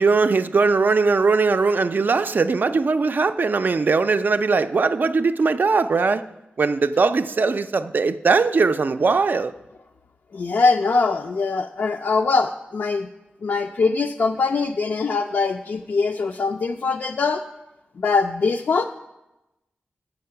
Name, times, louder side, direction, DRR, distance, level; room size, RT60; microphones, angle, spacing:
voice 1, 0.0-6.3 6.6-9.5, right 4 dB, 55° right, 10 dB, 0.4 m, -20 dB
voice 2, 10.3-13.1 13.4-17.4 18.0-18.8, left 4 dB, 65° left, 3 dB, 0.4 m, -22 dB
6.9 x 6.7 x 5.6 m, 0.95 s
cardioid pair, 55°, 4 cm